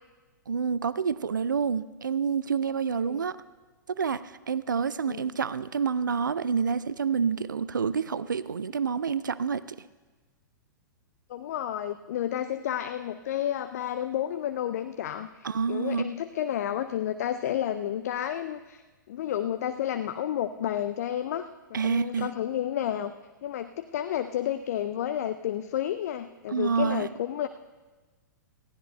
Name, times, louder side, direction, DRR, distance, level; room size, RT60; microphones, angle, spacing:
voice 1, 0.5-3.4 4.0-9.8 15.4-16.1 21.7-22.3 26.5-27.1, right 6 dB, 75° right, 17 dB, 0.4 m, -28 dB
voice 2, 11.3-18.8 19.1-23.1 23.4-27.5, left 10 dB, 50° left, 9 dB, 0.4 m, -31 dB
20.5 x 15.5 x 2.2 m, 1.3 s
figure-of-eight pair, 105°, 11 cm